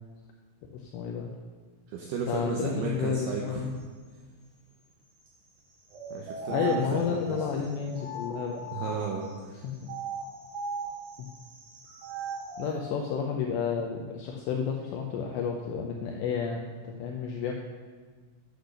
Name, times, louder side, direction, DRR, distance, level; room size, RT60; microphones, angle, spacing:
voice 1, 0.7-1.3 2.3-3.7 6.5-8.6 9.6-9.9 11.2-11.3 12.6-17.5, left 6 dB, 85° left, 1 dB, 2.5 m, -31 dB
voice 2, 1.9-3.6 6.1-7.5 8.7-9.7, right 5 dB, 80° right, 0 dB, 2.3 m, -34 dB
sound 1, 5.9-9.3 9.8-12.7, right 3 dB, 50° right, 2.9 m, -38 dB
8.4 x 8.2 x 6.6 m, 1.5 s
omnidirectional pair, 5.9 m